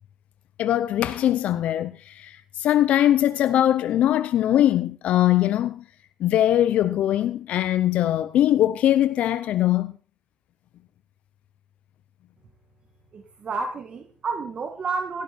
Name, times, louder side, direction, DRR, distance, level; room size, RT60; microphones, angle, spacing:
voice 1, 0.6-5.8 6.2-9.9, left 12 dB, 75° left, 0.7 m, -21 dB
voice 2, 13.1-15.2, right 4 dB, 50° right, 2.2 m, -30 dB
17.0 x 12.5 x 4.3 m
cardioid pair, 85°, 2 cm